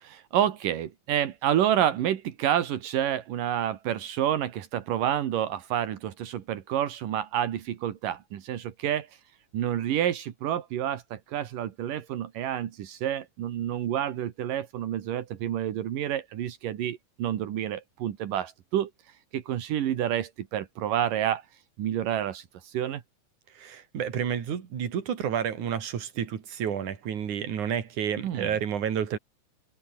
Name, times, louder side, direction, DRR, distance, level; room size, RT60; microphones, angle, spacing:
voice 1, 0.0-9.2 9.5-21.5 21.8-23.0 28.2-28.5, right 11 dB, 80° right, 3.3 m, -29 dB
voice 2, 23.5-29.2, right 8 dB, 65° right, 4.0 m, -30 dB
open air
omnidirectional pair, 3.8 m